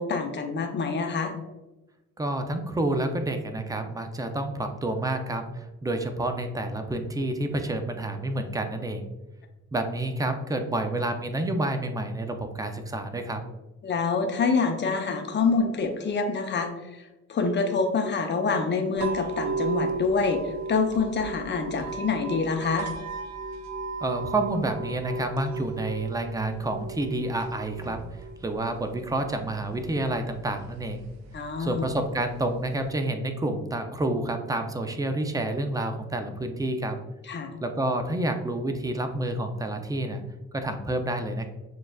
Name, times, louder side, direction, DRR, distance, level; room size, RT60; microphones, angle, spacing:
voice 1, 0.0-1.3 13.8-16.7 17.3-20.4 20.7-22.9 31.3-31.9 37.3-37.5, left 4 dB, 35° left, 4 dB, 0.7 m, -26 dB
voice 2, 2.2-9.1 9.7-13.4 24.0-28.0 28.4-31.0 31.6-37.0 37.6-40.2 40.5-41.5, right 1 dB, 10° right, 6 dB, 0.4 m, -29 dB
sound 1, 19.0-33.0, right 4 dB, 65° right, 0.5 m, -36 dB
6.3 x 2.4 x 2.3 m, 1.0 s
cardioid pair, 90°, 30 cm